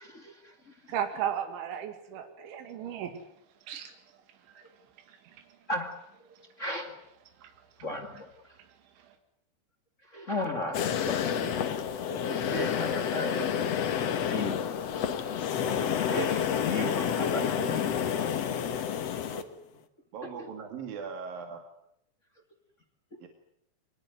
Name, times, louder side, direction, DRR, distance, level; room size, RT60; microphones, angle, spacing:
voice 1, 0.0-0.7 2.2-2.6 5.7-6.3 6.6-6.9 7.8-8.3 10.1-11.5 12.1-13.7 14.3-14.7 15.9-17.9 19.2-19.6 20.4-20.5, left 2 dB, 30° left, 5 dB, 1.4 m, -36 dB
voice 2, 0.9-3.1 3.7-3.9, right 9 dB, 85° right, 6 dB, 4.5 m, -34 dB
sound 1, 10.7-19.4, left 8 dB, 80° left, 1.4 m, -29 dB
voice 3, 17.4-17.8 20.1-21.6 23.2-23.3, right 6 dB, 55° right, 5 dB, 3.5 m, -39 dB
24.0 x 21.0 x 9.5 m, 0.73 s
omnidirectional pair, 5.3 m